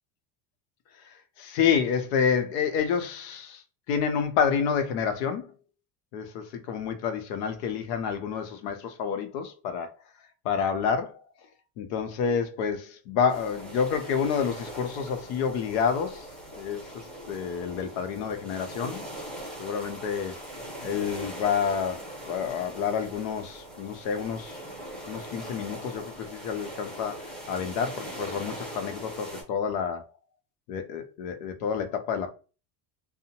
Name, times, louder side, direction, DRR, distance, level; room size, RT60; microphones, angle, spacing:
voice 1, 1.4-3.6 3.9-5.5 6.1-9.9 10.4-11.2 11.8-16.3 16.6-19.0 19.6-20.4 20.8-24.6 25.1-30.0 30.7-32.3, left 7 dB, 80° left, 0.7 m, -29 dB
sound 1, 13.3-29.4, right 1 dB, ahead, 0.7 m, -41 dB
2.7 x 2.1 x 2.8 m
cardioid pair, 175°, 47 cm